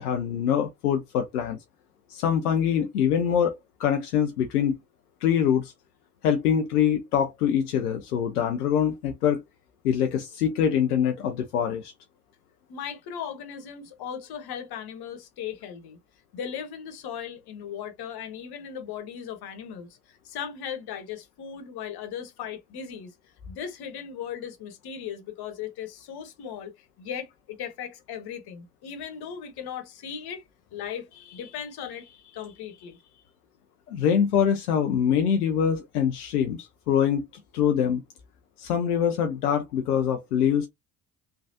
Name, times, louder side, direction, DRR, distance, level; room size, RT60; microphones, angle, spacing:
voice 1, 0.0-1.6 2.1-4.8 5.2-5.7 6.2-9.4 9.8-11.9 33.9-37.2 37.5-38.0 38.6-40.7, left 8 dB, 85° left, 0.6 m, -24 dB
voice 2, 12.7-16.0 16.3-23.1 23.5-30.4 30.7-33.2, left 8 dB, 55° left, 1.2 m, -37 dB
3.3 x 2.3 x 2.6 m
hypercardioid pair, 50°, 45 cm